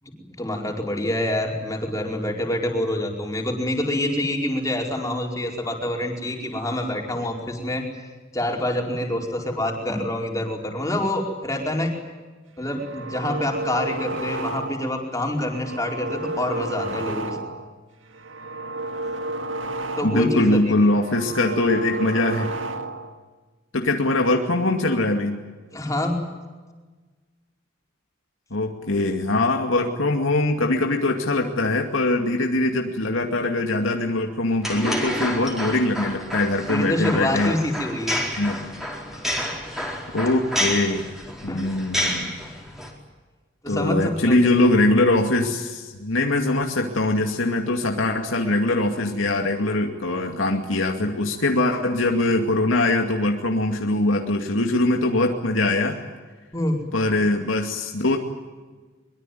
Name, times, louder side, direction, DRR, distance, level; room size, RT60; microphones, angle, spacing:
voice 1, 0.0-7.9 8.3-12.0 12.6-17.4 20.0-20.6 25.7-26.2 36.7-38.2 41.5-41.7 43.6-44.5 56.5-56.8, left 1 dB, 15° left, 1 dB, 4.7 m, -26 dB
sound 1, 12.6-15.0 15.4-17.7 18.1-20.4 20.8-23.2, right 2 dB, 80° right, 1.9 m, -32 dB
voice 2, 20.0-22.5 23.7-25.4 28.5-37.5 38.4-38.6 40.1-41.1 41.4-42.3 43.7-56.0 56.9-58.2, left 2 dB, 90° left, 2 dB, 2.4 m, -22 dB
sound 2, 34.6-42.9, equal, ahead, 4.7 m, -29 dB
24.0 x 22.5 x 9.3 m, 1.3 s
head